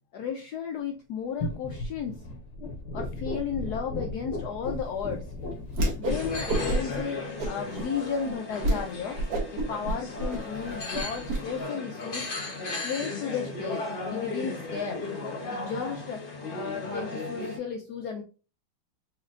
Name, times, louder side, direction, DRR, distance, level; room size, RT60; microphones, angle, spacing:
voice 1, 0.1-2.2 2.9-5.2 6.0-9.2 9.5-12.3 12.8-13.8 14.1-15.0 15.5-16.2 16.5-18.2, left 7 dB, 80° left, 4 dB, 0.8 m, -34 dB
sound 1, 1.4-7.0, left 2 dB, 65° left, 1.2 m, -36 dB
Whoosh swoosh swish, 5.7-6.2 6.5-7.0 7.4-7.9 8.2-8.3 8.6-8.8 9.1-11.4, right 1 dB, 60° right, 1.4 m, -28 dB
sound 2, 6.1-17.6, left 3 dB, 40° left, 0.8 m, -36 dB
4.3 x 2.9 x 2.4 m, 0.33 s
omnidirectional pair, 2.2 m